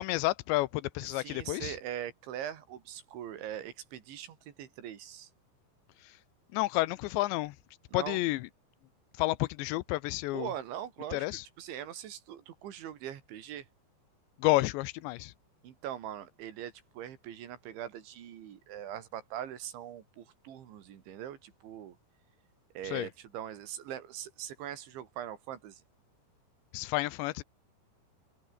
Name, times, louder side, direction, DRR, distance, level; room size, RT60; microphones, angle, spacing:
voice 1, 0.0-1.8 6.5-7.6 7.9-8.5 9.2-10.5 11.1-11.5 14.4-15.3 22.8-23.1 26.7-27.4, left 19 dB, 90° left, 2.9 m, -30 dB
voice 2, 1.1-5.3 7.9-8.2 10.3-11.2 11.6-13.7 15.6-22.0 22.7-25.8, right 10 dB, 90° right, 4.9 m, -41 dB
omnidirectional pair, 5.2 m